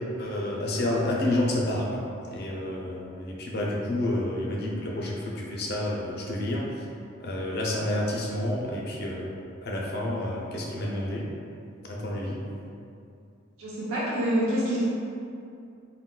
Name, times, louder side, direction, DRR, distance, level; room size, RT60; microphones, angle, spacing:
voice 1, 0.2-2.0 2.3-6.6 7.2-9.3 9.6-11.2 11.9-12.4, left 1 dB, 50° left, -3 dB, 0.4 m, -29 dB
voice 2, 13.6-14.8, equal, 85° right, -7 dB, 0.4 m, -26 dB
3.6 x 2.2 x 2.2 m, 2.5 s
head